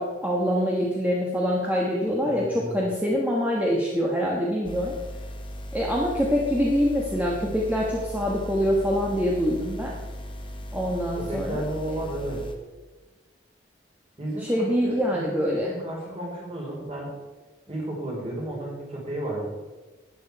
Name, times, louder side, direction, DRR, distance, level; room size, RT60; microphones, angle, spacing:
voice 1, 0.0-5.0 5.7-9.9 10.7-11.7 14.4-15.7, equal, 10° right, -3 dB, 1.3 m, -25 dB
voice 2, 2.2-2.8 11.2-12.4 14.2-15.4 15.7-17.1 17.7-19.5, right 1 dB, 30° right, -3 dB, 4.0 m, -33 dB
sound 1, 4.6-12.5, equal, 25° left, 1.2 m, -37 dB
12.5 x 9.1 x 4.7 m, 1.3 s
head